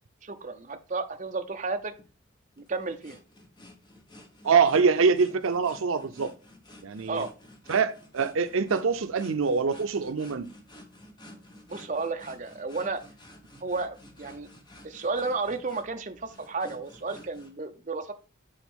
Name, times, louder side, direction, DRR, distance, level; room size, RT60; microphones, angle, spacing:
voice 1, 0.2-1.9 2.6-3.2 7.1-7.3 11.7-13.0 13.6-14.5 14.8-18.1, right 3 dB, 40° right, 0.7 m, -32 dB
sound 1, 1.8-17.5, left 1 dB, 20° left, 1.1 m, -51 dB
voice 2, 4.4-6.3 6.8-7.2 7.7-10.5, right 5 dB, 80° right, 0.6 m, -24 dB
8.8 x 4.2 x 3.6 m
head